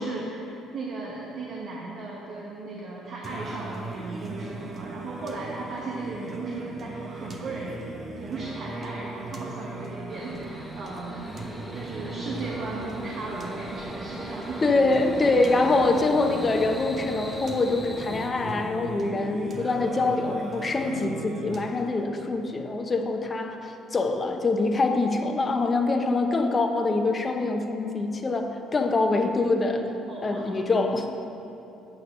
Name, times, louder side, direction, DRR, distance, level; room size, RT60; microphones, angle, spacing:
voice 1, 0.0-7.8 8.2-11.3 11.7-14.6 30.1-30.5, right 3 dB, 60° right, -3 dB, 1.2 m, -36 dB
Singing, 3.2-22.2, right 3 dB, 40° right, 1.0 m, -38 dB
sound 1, 10.1-18.3, equal, ahead, 1.1 m, -39 dB
voice 2, 14.6-29.9 30.2-31.1, left 3 dB, 30° left, 5 dB, 0.9 m, -24 dB
8.8 x 6.5 x 6.3 m, 2.9 s
supercardioid pair, 85°, 0 cm